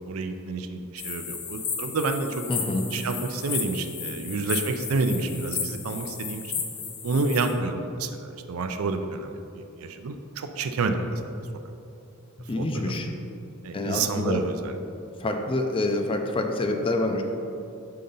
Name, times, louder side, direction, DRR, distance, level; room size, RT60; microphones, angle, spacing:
voice 1, 0.1-2.5 2.9-6.5 7.0-11.4 12.6-12.9 13.6-14.8, right 3 dB, 85° right, 7 dB, 0.5 m, -29 dB
sound 1, 1.0-7.5, left 6 dB, 55° left, 0.8 m, -34 dB
voice 2, 2.5-2.9 12.4-13.2 13.7-14.4 15.2-17.2, left 2 dB, 25° left, 4 dB, 0.5 m, -27 dB
5.7 x 3.8 x 5.4 m, 2.7 s
head